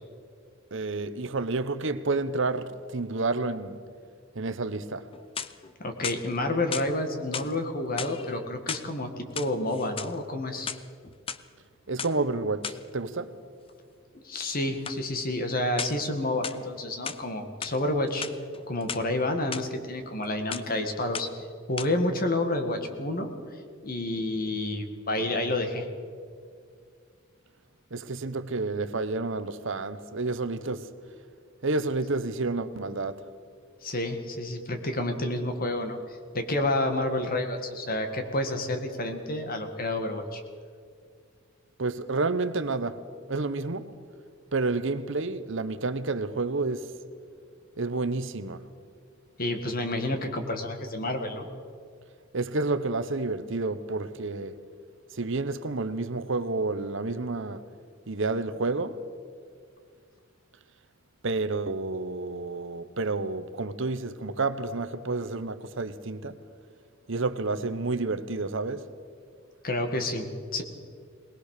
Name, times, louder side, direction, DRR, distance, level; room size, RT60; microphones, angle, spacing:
voice 1, 0.7-3.8 4.3-5.1 11.9-13.4 27.9-30.9 31.6-33.2 41.8-44.0 44.5-47.0 47.8-48.6 52.3-54.6 55.1-57.6 58.1-59.0 61.2-66.4 67.1-68.9, right 3 dB, 65° right, 1.0 m, -30 dB
sound 1, 5.1-5.7 6.0-6.9 7.3-7.5 7.9-8.9 9.2-10.1 10.5-11.4 12.0-12.1 12.6-12.9 14.8-15.0 15.8-16.1 16.4-17.2 17.6-17.8 18.1-19.0 19.5-19.6 20.0-20.3 20.5-20.8 21.1-21.5 21.8-21.9, left 7 dB, 25° left, 0.6 m, -36 dB
voice 2, 5.8-10.7 14.2-18.2 18.7-21.3 21.7-23.3 23.8-25.9 33.8-36.0 36.3-40.4 49.4-51.5 69.6-70.6, left 1 dB, 45° left, 2.1 m, -29 dB
21.0 x 20.0 x 6.7 m
head